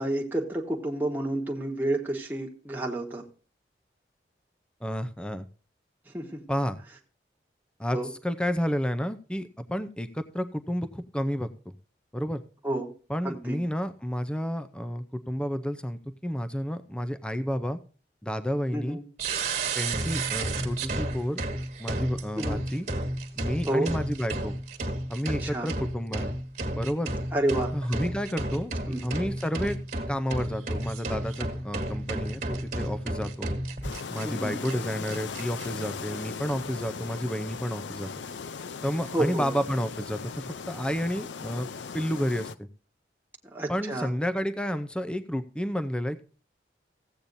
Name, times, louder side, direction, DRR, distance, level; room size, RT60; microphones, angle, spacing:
voice 1, 0.0-3.2 6.1-6.4 7.9-8.1 12.6-12.9 13.2-13.6 18.7-19.1 22.4-22.6 23.7-23.9 25.4-25.7 27.3-27.7 28.9-29.1 34.2-34.6 39.1-39.5 43.5-44.1, right 1 dB, 10° right, 0 dB, 1.3 m, -30 dB
voice 2, 4.8-5.5 6.5-6.8 7.8-8.0 8.2-11.5 12.1-12.4 13.1-17.8 18.2-19.0 19.8-21.4 21.8-22.9 23.4-24.5 25.1-26.3 26.7-27.1 27.7-28.7 29.0-29.8 30.1-33.5 34.1-38.1 38.8-41.7 41.9-42.7 43.7-46.2, equal, 5° left, 10 dB, 0.5 m, -30 dB
sound 1, 19.2-34.2 34.6-34.7 35.1-35.7, right 2 dB, 45° right, 1.7 m, -32 dB
sound 2, 33.8-42.6, left 5 dB, 85° left, 0.5 m, -38 dB
15.5 x 8.6 x 2.6 m, 0.38 s
head